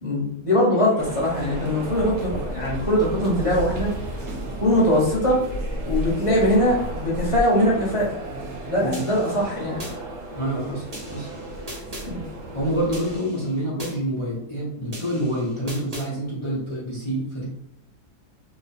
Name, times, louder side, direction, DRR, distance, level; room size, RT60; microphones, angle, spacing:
voice 1, 0.0-4.2 4.6-5.4 5.8-8.2 8.7-9.8 12.0-12.2, left 1 dB, 25° left, -6 dB, 0.8 m, -22 dB
sound 1, 1.0-13.2, right 1 dB, 65° right, 1.2 m, -33 dB
sound 2, 8.9-9.9 10.9-12.1 12.9-13.9 14.9-16.1, equal, 30° right, 0.7 m, -39 dB
voice 2, 10.3-11.3 12.5-17.4, right 1 dB, 40° left, -7 dB, 0.4 m, -27 dB
3.1 x 2.1 x 4.1 m, 0.79 s
omnidirectional pair, 1.8 m